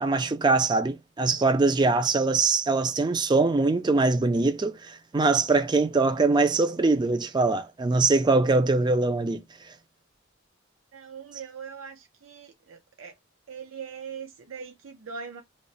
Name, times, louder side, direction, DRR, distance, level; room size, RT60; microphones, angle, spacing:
voice 1, 0.0-9.4, right 3 dB, 20° right, 0.3 m, -23 dB
voice 2, 10.9-12.0 12.2-13.1 13.5-15.4, right 6 dB, 85° right, 0.6 m, -41 dB
3.1 x 2.0 x 3.9 m
head